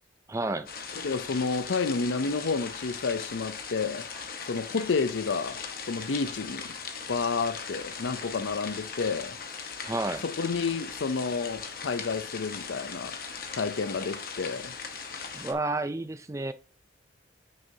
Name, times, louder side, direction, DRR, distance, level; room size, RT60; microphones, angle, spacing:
voice 1, 0.3-0.7 9.9-10.2 15.3-16.5, right 2 dB, 15° right, 0.4 m, -30 dB
sound 1, 0.6-15.5, left 5 dB, 50° left, 1.0 m, -39 dB
voice 2, 0.9-4.1 4.4-5.6 5.9-6.8 7.1-9.4 10.2-13.2 13.5-14.8, left 4 dB, 75° left, 0.5 m, -30 dB
8.9 x 6.5 x 2.8 m
head